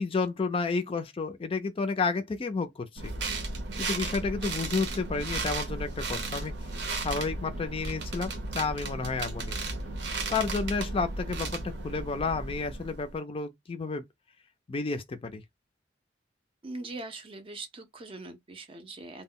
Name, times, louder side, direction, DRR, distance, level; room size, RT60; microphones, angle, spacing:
voice 1, 0.0-3.1 3.8-6.5 7.0-9.6 10.3-14.0 14.7-15.4, left 4 dB, 30° left, 0.4 m, -31 dB
sound 1, 3.0-13.2, right 3 dB, 75° right, 0.7 m, -35 dB
voice 2, 16.6-19.2, right 2 dB, 30° right, 0.5 m, -41 dB
2.1 x 2.0 x 3.6 m
head